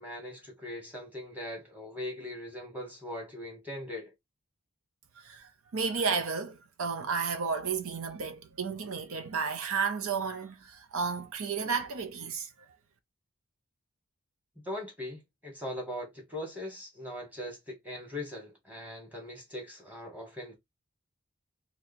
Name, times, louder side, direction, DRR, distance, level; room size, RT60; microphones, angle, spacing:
voice 1, 0.0-4.1 14.6-20.5, left 1 dB, 5° right, 1.4 m, -40 dB
voice 2, 5.2-12.5, right 5 dB, 75° right, 0.6 m, -32 dB
2.9 x 2.7 x 4.1 m
head